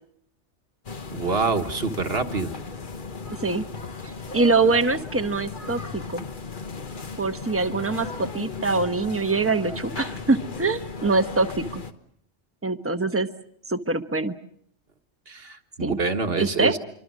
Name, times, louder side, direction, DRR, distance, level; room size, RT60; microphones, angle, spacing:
sound 1, 0.8-11.9, left 4 dB, 45° left, 1.4 m, -36 dB
voice 1, 1.1-2.5 15.3-16.8, right 4 dB, 55° right, 7 dB, 1.8 m, -26 dB
voice 2, 3.3-3.6 4.0-6.2 7.2-11.8 12.6-13.3 13.7-14.3 15.8-16.0 16.4-16.8, right 3 dB, 10° right, 8 dB, 1.0 m, -24 dB
27.5 x 24.5 x 6.3 m, 0.68 s
omnidirectional pair, 1.2 m